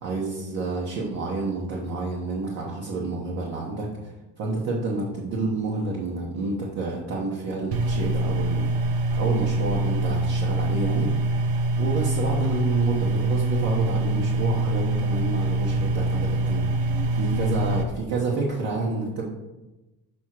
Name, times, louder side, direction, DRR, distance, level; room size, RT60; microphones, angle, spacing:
voice 1, 0.0-16.7 17.1-19.2, right 3 dB, 50° right, -4 dB, 1.1 m, -29 dB
sound 1, 7.7-17.8, right 2 dB, 85° right, 1.0 m, -24 dB
6.3 x 3.5 x 6.0 m, 1.1 s
cardioid pair, 160°, 35 cm